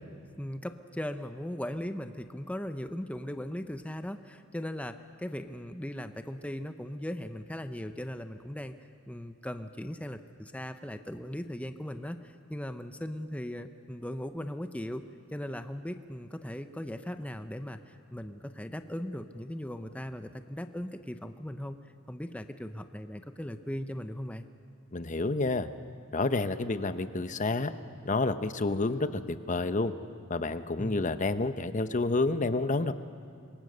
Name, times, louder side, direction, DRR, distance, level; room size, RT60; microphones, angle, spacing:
voice 1, 0.4-8.7 9.1-15.0 15.3-21.8 22.1-24.5 30.8-31.2, left 1 dB, 5° left, 8 dB, 0.7 m, -38 dB
voice 2, 24.9-25.7 26.1-27.7 28.0-29.9 30.3-32.9, left 3 dB, 35° left, 11 dB, 0.8 m, -29 dB
26.0 x 23.0 x 6.7 m, 2.4 s
head